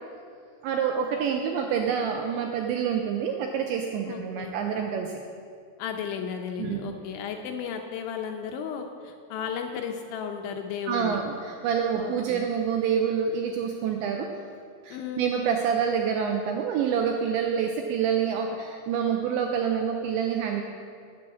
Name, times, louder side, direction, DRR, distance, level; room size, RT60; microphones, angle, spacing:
voice 1, 0.6-5.2 6.6-6.9 10.9-14.3 14.8-20.6, right 7 dB, 90° right, 3 dB, 2.6 m, -27 dB
voice 2, 4.1-4.5 5.8-11.2 12.0-12.5 14.9-15.4, left 7 dB, 80° left, 4 dB, 2.8 m, -34 dB
12.5 x 7.6 x 8.4 m, 2.4 s
omnidirectional pair, 5.9 m